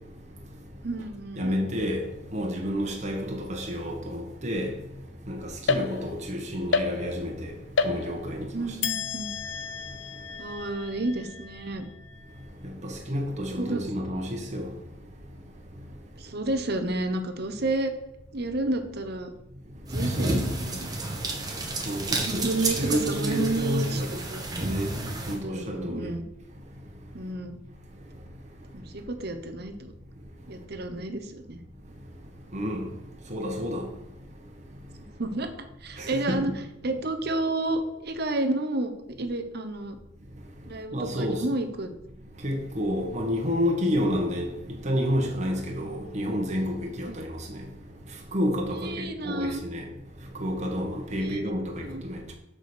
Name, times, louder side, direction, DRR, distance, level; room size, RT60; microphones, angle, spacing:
voice 1, 0.8-1.7 8.5-9.3 10.4-11.8 13.6-13.8 16.2-17.9 18.3-19.3 19.8-20.9 22.2-24.4 25.3-26.3 27.1-27.6 28.7-29.9 30.5-31.6 35.2-35.5 35.8-36.5 36.8-38.9 39.2-40.0 40.6-41.9 47.1-47.2 48.8-49.6 51.1-51.4 51.8-52.0, right 2 dB, 60° right, 1.0 m, -31 dB
voice 2, 1.4-2.0 2.3-4.7 5.3-5.4 5.7-7.5 7.8-8.5 13.1-14.7 20.2-20.4 21.9-24.1 24.6-24.9 25.3-26.0 32.5-32.8 33.3-33.8 36.0-36.4 40.9-41.4 42.4-44.5 44.8-47.2 48.3-49.8 50.4-52.3, equal, 40° right, 1.5 m, -29 dB
sound 1, 5.7-6.3 6.7-7.4 7.8-8.4 8.8-12.3, left 5 dB, 80° left, 0.7 m, -31 dB
sound 2, 19.9-25.4, right 2 dB, 20° right, 1.3 m, -30 dB
6.7 x 5.1 x 6.7 m
head